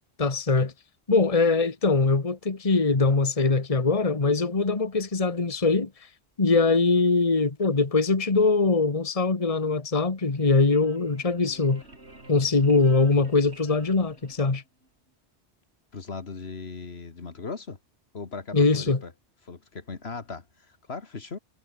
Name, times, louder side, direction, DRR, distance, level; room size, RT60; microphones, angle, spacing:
voice 1, 0.2-0.7 1.1-5.9 6.4-11.8 12.3-14.6 18.5-19.0, left 3 dB, 30° left, 1.6 m, -22 dB
sound 1, 10.2-14.9, right 2 dB, 70° right, 5.4 m, -50 dB
voice 2, 15.9-17.8 18.1-19.1 19.4-21.4, left 4 dB, 65° left, 2.1 m, -38 dB
omnidirectional pair, 1.2 m